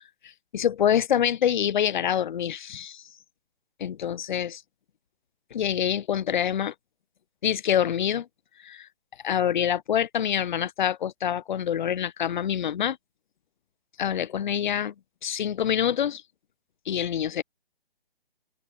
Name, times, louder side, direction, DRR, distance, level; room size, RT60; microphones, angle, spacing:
voice 1, 0.5-3.0 3.8-4.6 5.5-6.7 7.4-8.3 8.6-8.9 9.2-13.0 14.0-14.9 15.2-16.2 16.9-17.4, left 9 dB, 50° left, 0.4 m, -26 dB
hypercardioid pair, 155°, 31 cm